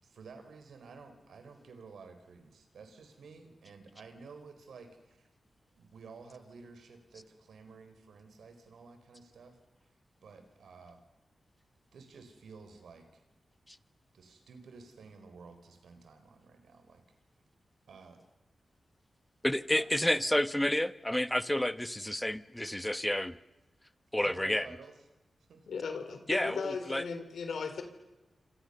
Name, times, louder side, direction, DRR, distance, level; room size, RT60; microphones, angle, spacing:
voice 1, 0.0-5.3 5.7-9.6 10.2-11.0 11.9-13.2 14.1-17.0 17.9-18.2 19.7-19.9 24.2-25.0 25.5-26.2, right 4 dB, 85° right, 7 dB, 4.4 m, -52 dB
voice 2, 19.4-23.3 24.1-24.7 26.3-27.0, left 1 dB, 10° left, 14 dB, 1.1 m, -30 dB
voice 3, 25.7-27.8, left 5 dB, 85° left, 8 dB, 3.6 m, -37 dB
28.0 x 26.0 x 6.8 m, 1.0 s
cardioid pair, 60°, 0 cm